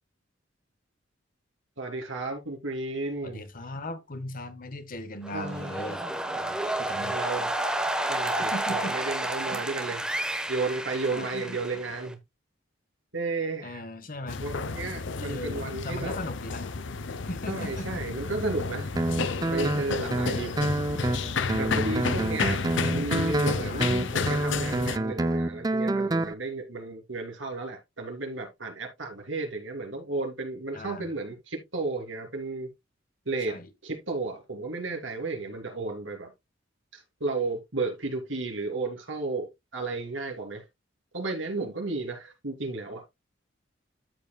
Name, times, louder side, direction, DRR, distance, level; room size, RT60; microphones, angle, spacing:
voice 1, 1.8-3.4 5.3-5.8 7.0-7.5 8.1-10.0 10.5-12.2 13.1-13.8 14.4-16.1 17.5-18.9 19.5-20.5 21.6-32.7 33.3-33.5 33.8-36.3 36.9-40.6 41.1-43.0, right 3 dB, 80° right, 3.0 m, -33 dB
voice 2, 3.2-6.0 6.3-7.2 8.5-8.9 9.5-9.6 11.1-11.6 13.6-14.4 15.2-16.6 17.3-18.0 23.7-24.0 30.7-31.1 33.5-33.7, left 1 dB, 45° left, 1.1 m, -38 dB
sound 1, 5.2-12.1, right 1 dB, 5° right, 1.0 m, -31 dB
sound 2, 14.3-25.0, left 4 dB, 70° left, 0.6 m, -31 dB
Guitar, 19.0-26.3, right 2 dB, 20° right, 0.4 m, -28 dB
13.0 x 5.2 x 2.2 m
head